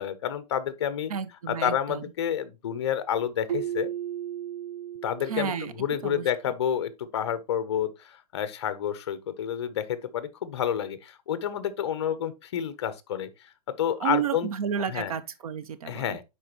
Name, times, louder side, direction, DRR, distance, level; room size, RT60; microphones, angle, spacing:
voice 1, 0.0-1.1 1.5-3.9 5.0-13.3 13.7-14.5 14.9-15.1 15.9-16.2, left 9 dB, 45° left, 0.8 m, -29 dB
voice 2, 1.1-2.0 5.3-5.7 6.0-6.3 14.0-16.2, right 8 dB, 60° right, 0.9 m, -31 dB
Keyboard (musical), 3.5-6.3, right 10 dB, 90° right, 0.9 m, -35 dB
10.5 x 4.0 x 2.9 m
hypercardioid pair, 175°, 20 cm